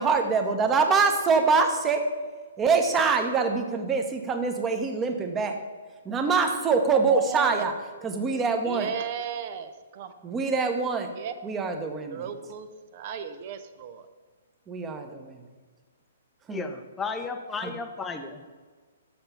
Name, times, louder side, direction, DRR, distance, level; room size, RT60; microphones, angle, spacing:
voice 1, 0.0-2.1 2.6-5.6 6.0-7.7 8.0-8.9 10.2-11.1 11.4-12.3 14.7-15.4 16.5-16.6 17.6-17.7, right 4 dB, 15° right, 6 dB, 0.9 m, -24 dB
voice 2, 7.1-7.6 8.6-10.1 11.2-11.3 12.1-12.7 12.9-14.0, right 7 dB, 40° right, 10 dB, 0.5 m, -34 dB
voice 3, 16.5-18.5, left 4 dB, 10° left, 5 dB, 0.6 m, -34 dB
7.0 x 6.6 x 5.7 m, 1.5 s
figure-of-eight pair, 120°, 0 cm